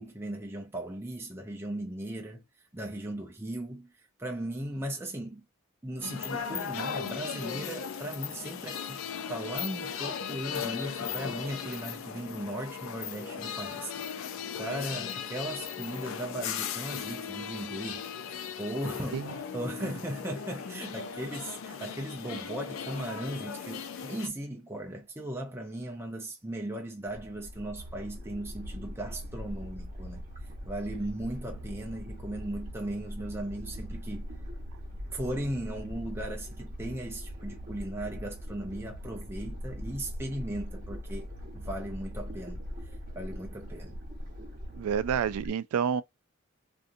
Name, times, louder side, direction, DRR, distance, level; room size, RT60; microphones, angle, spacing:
voice 1, 0.0-2.4 2.7-5.4 5.8-9.0 9.3-14.3 14.5-34.3 35.1-41.3 41.5-44.0, right 1 dB, 10° right, 0.5 m, -37 dB
sound 1, 6.0-24.3, left 7 dB, 70° left, 0.4 m, -37 dB
sound 2, 27.1-45.5, equal, 35° right, 1.0 m, -41 dB
voice 2, 44.7-46.0, right 7 dB, 85° right, 0.3 m, -28 dB
2.6 x 2.5 x 2.5 m
head